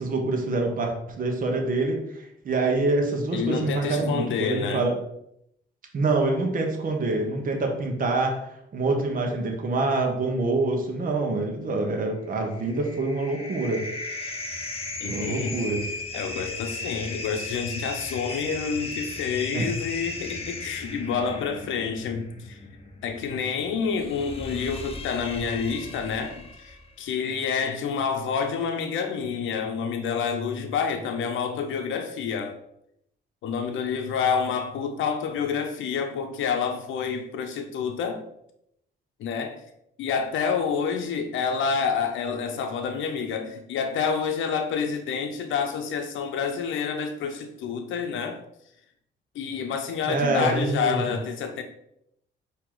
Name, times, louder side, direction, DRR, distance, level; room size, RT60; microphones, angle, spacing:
voice 1, 0.0-4.9 5.9-8.4 8.7-13.9 15.0-15.8 19.5-19.6 50.1-51.2, right 2 dB, 45° right, 2 dB, 1.0 m, -26 dB
voice 2, 3.3-4.9 15.0-15.6 16.1-22.6 23.0-32.6 33.4-38.2 39.2-39.6 40.0-48.4 49.3-51.6, left 6 dB, 75° left, 6 dB, 0.7 m, -28 dB
sound 1, 12.3-26.9, left 2 dB, 30° left, 0.8 m, -37 dB
4.6 x 2.9 x 3.8 m, 0.77 s
cardioid pair, 90°, 20 cm